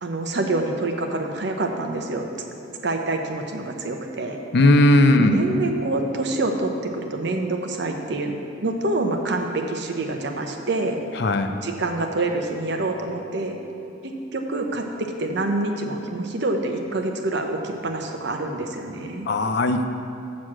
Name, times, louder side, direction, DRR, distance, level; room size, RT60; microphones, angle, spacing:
voice 1, 0.0-2.3 2.8-4.4 5.2-11.0 11.6-13.6 14.0-19.3, right 2 dB, 60° right, 4 dB, 0.8 m, -26 dB
voice 2, 4.5-5.3 11.1-11.5 19.3-19.9, left 1 dB, 55° left, 8 dB, 0.5 m, -17 dB
6.3 x 6.3 x 7.4 m, 2.8 s
head